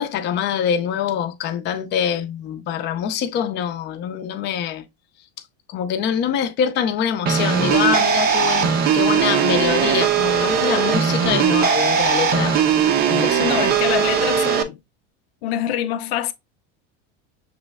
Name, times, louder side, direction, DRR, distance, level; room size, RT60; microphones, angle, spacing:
voice 1, 0.0-4.8 5.7-12.6 13.1-13.5, left 8 dB, 35° left, 0.6 m, -24 dB
sound 1, 7.3-14.6, right 7 dB, 30° right, 0.5 m, -19 dB
voice 2, 13.4-14.8 15.4-16.3, left 11 dB, 85° left, 0.6 m, -25 dB
6.1 x 3.1 x 2.2 m
supercardioid pair, 145°, 30 cm